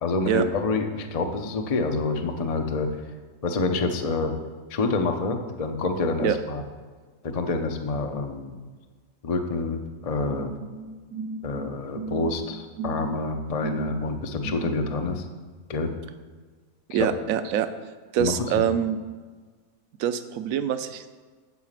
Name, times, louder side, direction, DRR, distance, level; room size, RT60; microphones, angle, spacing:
voice 1, 0.0-2.9 3.4-4.3 4.7-6.6 7.2-8.6 9.2-10.5 11.4-15.2 15.7-15.9 16.9-17.1 18.2-18.6, left 3 dB, 50° left, 5 dB, 0.4 m, -27 dB
sound 1, 10.3-15.1, right 3 dB, 85° right, 1.2 m, -36 dB
voice 2, 16.9-17.7 18.1-19.0 20.0-21.1, right 9 dB, 70° right, 11 dB, 0.9 m, -24 dB
8.2 x 4.9 x 7.4 m, 1.4 s
omnidirectional pair, 1.6 m